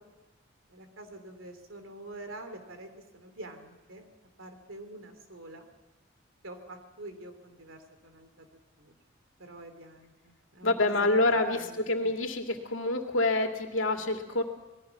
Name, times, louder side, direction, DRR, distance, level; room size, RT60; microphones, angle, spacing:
voice 1, 0.7-4.1 4.4-5.6 6.4-8.5 8.8-8.9 9.4-12.1, right 1 dB, 85° right, 7 dB, 3.0 m, -46 dB
voice 2, 10.6-14.4, left 2 dB, 75° left, 4 dB, 2.4 m, -27 dB
26.0 x 20.0 x 6.0 m, 1.1 s
head